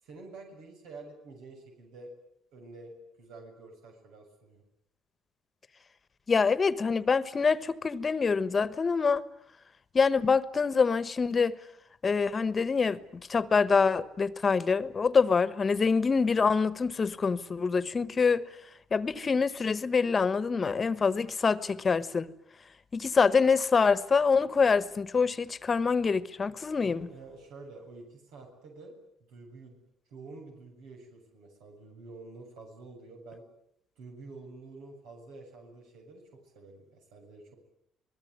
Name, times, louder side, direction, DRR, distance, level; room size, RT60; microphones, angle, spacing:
voice 1, 0.0-2.1 2.5-4.6 26.8-29.0 29.3-29.8 30.1-33.4 34.0-36.2 36.5-37.6, right 3 dB, 90° right, 7.5 m, -48 dB
voice 2, 6.3-9.2 9.9-11.6 12.0-13.0 13.3-18.4 18.9-22.3 22.9-27.1, left 5 dB, 30° left, 1.2 m, -25 dB
26.5 x 20.0 x 9.6 m
cardioid pair, 105°, 0 cm